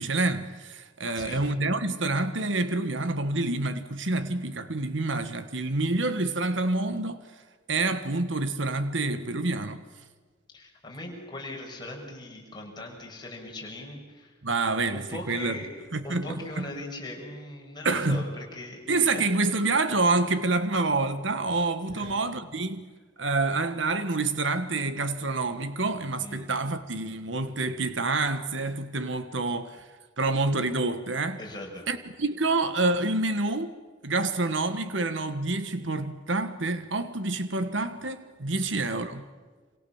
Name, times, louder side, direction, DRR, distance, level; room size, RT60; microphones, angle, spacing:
voice 1, 0.0-7.3 7.7-9.8 14.4-15.6 15.9-16.7 17.8-18.3 18.9-22.9 23.2-29.9 30.2-31.4 31.9-33.7 34.0-39.3, right 3 dB, 75° right, 1.5 m, -27 dB
voice 2, 1.0-1.4 10.5-14.3 14.9-15.7 16.0-18.8 19.1-19.2 21.9-22.1 26.2-26.5 31.4-31.9 38.5-38.7, left 1 dB, 20° left, 6.4 m, -40 dB
28.0 x 28.0 x 7.2 m
head